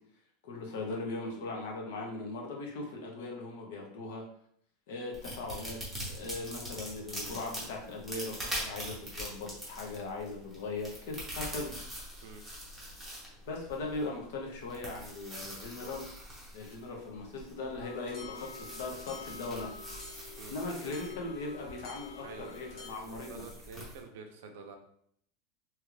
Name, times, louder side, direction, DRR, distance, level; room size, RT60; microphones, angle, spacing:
voice 1, 0.4-4.2 4.9-5.8 6.1-11.7 13.5-16.1 16.5-19.9 20.5-23.4, left 3 dB, 65° left, 0 dB, 0.9 m, -39 dB
sound 1, 5.1-24.0, equal, ahead, 0.7 m, -44 dB
sound 2, 17.8-22.9, left 5 dB, 35° left, 0.8 m, -48 dB
voice 2, 22.2-24.8, right 4 dB, 70° right, 4 dB, 0.5 m, -48 dB
3.0 x 2.4 x 3.2 m, 0.66 s
supercardioid pair, 180°, 0 cm